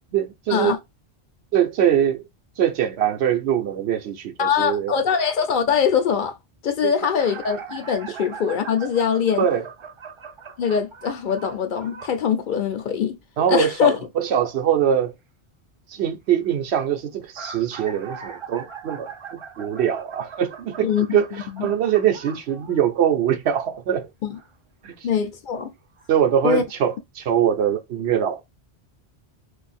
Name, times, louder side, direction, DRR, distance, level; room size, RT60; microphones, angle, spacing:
voice 1, 0.1-0.8 1.5-2.3 2.6-4.9 6.8-6.9 9.4-9.7 13.4-15.1 15.9-21.3 21.6-24.1 24.8-24.9 26.1-28.4, right 9 dB, 90° right, 0.9 m, -22 dB
voice 2, 4.4-6.4 6.6-9.5 10.6-13.2 13.5-14.0 20.8-21.2 21.5-21.7 24.2-24.4 25.0-25.7 26.4-26.6, left 7 dB, 60° left, 0.6 m, -22 dB
sound 1, 7.2-12.2 17.1-23.2 24.3-24.5 25.5-25.6 26.0-26.1, right 6 dB, 50° right, 0.3 m, -40 dB
2.6 x 2.4 x 4.1 m
omnidirectional pair, 1.1 m